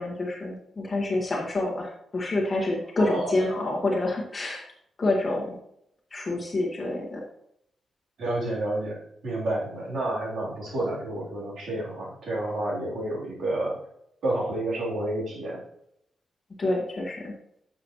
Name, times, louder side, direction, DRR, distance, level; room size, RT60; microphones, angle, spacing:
voice 1, 0.0-4.7 5.0-5.6 6.1-7.2 16.6-17.3, left 2 dB, 25° left, -1 dB, 1.7 m, -27 dB
voice 2, 3.0-3.4 8.2-13.8 14.2-15.6, right 1 dB, 70° right, -5 dB, 3.5 m, -30 dB
11.5 x 7.1 x 3.1 m, 0.75 s
wide cardioid pair, 155°, 0 cm